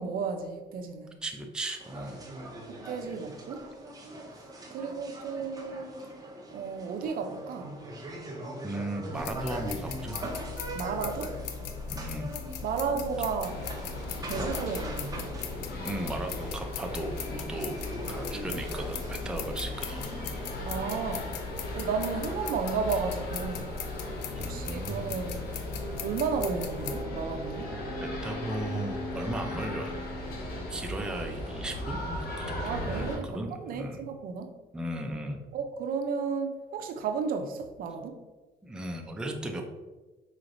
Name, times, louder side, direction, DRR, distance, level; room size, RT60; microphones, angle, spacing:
voice 1, 0.0-1.2 2.7-3.6 4.7-5.9 6.5-7.8 10.7-11.4 12.6-13.7 14.2-15.3 20.6-21.3 21.7-23.7 24.4-25.5 26.0-27.7 32.6-34.5 35.5-38.2, right 5 dB, 60° right, 0.5 m, -33 dB
voice 2, 1.2-2.2 8.6-10.3 11.9-12.4 15.7-17.8 18.1-20.1 24.4-25.1 28.0-29.9 30.7-34.0 34.7-35.5 38.6-39.6, right 1 dB, 5° right, 0.4 m, -36 dB
sound 1, 1.8-20.6, right 1 dB, 20° right, 0.8 m, -42 dB
sound 2, 9.1-27.0, left 7 dB, 85° left, 0.4 m, -39 dB
sound 3, 13.4-33.2, equal, 65° left, 1.2 m, -38 dB
4.8 x 3.2 x 2.5 m
cardioid pair, 110°, 17 cm